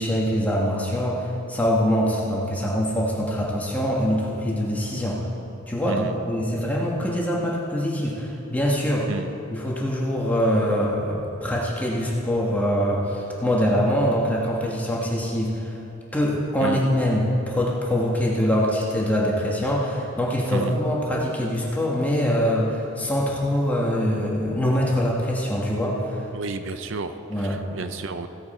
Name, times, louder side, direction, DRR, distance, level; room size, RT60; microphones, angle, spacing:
voice 1, 0.0-5.2 5.7-9.1 9.5-15.8 16.1-26.3 27.3-27.6, equal, 10° left, -4 dB, 1.5 m, -24 dB
voice 2, 26.3-28.3, right 3 dB, 60° right, 9 dB, 0.6 m, -31 dB
16.0 x 8.5 x 4.3 m, 2.8 s
head